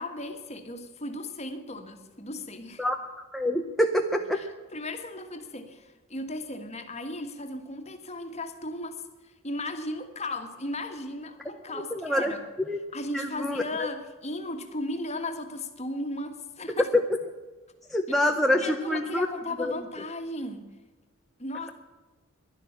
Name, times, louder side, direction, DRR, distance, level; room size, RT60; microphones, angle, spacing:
voice 1, 0.0-2.8 4.3-12.4 12.9-16.9 18.6-20.7 21.4-21.7, left 2 dB, 30° left, 6 dB, 1.6 m, -36 dB
voice 2, 3.3-4.4 11.9-12.3 12.7-12.8 13.1-13.9 16.9-17.0 17.9-19.3 19.6-19.7, left 1 dB, ahead, 1 dB, 0.7 m, -25 dB
12.0 x 11.5 x 8.5 m, 1.3 s
head